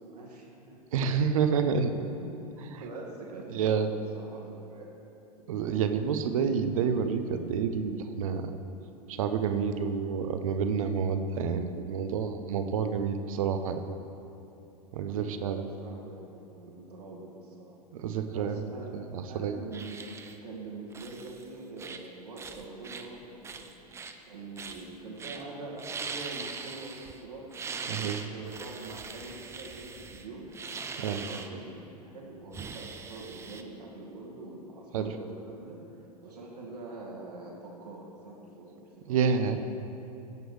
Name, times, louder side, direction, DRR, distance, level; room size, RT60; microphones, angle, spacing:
voice 1, 0.0-1.2 1.9-2.4 2.8-5.0 6.0-6.2 15.0-17.8 18.3-20.1 20.4-23.7 24.2-30.5 31.0-31.8 32.0-39.6, right 2 dB, 75° right, -3 dB, 2.0 m, -44 dB
voice 2, 0.9-1.9 2.7-2.8 3.5-3.9 5.5-8.5 9.1-13.8 14.9-15.7 17.9-18.6 18.9-19.5 27.9-28.2 31.0-31.2 34.9-35.1 39.1-39.6, right 6 dB, 60° right, 9 dB, 0.7 m, -29 dB
sound 1, 19.7-20.4 20.9-21.4 21.8-22.1 22.4-23.1 23.4-24.1 24.6-24.9 25.2-25.4 25.8-27.2 27.5-31.5 32.5-33.6, right 5 dB, 15° right, 0.5 m, -41 dB
16.0 x 7.7 x 3.3 m, 2.8 s
figure-of-eight pair, 90°, 20 cm